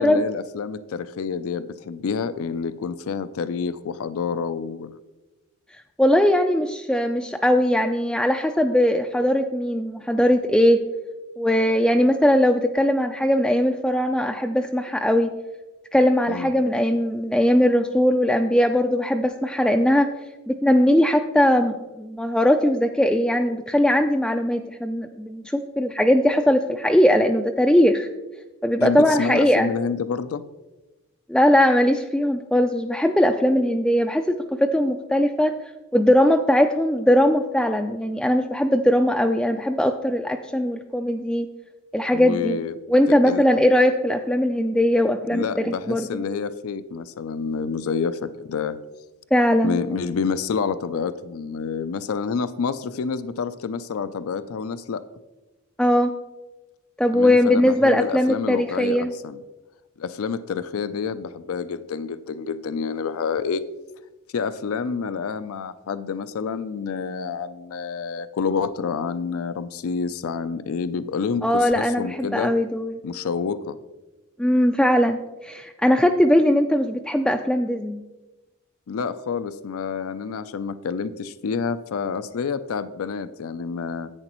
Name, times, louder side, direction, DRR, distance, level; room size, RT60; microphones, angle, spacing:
voice 1, 0.0-4.9 16.3-16.5 28.8-30.4 42.1-42.7 43.1-43.4 45.3-48.8 49.6-55.0 57.1-59.4 60.0-63.6 64.3-72.5 73.0-73.8 78.9-84.1, left 5 dB, 70° left, 13 dB, 0.4 m, -28 dB
voice 2, 6.0-10.8 11.4-15.3 15.9-20.1 20.5-28.1 28.6-29.7 31.3-34.2 34.5-35.5 35.9-41.5 41.9-42.6 42.9-46.2 49.3-49.8 55.8-56.1 57.0-59.1 71.4-72.9 74.4-78.0, left 1 dB, 5° left, 4 dB, 0.3 m, -20 dB
10.5 x 8.6 x 3.0 m, 1.1 s
head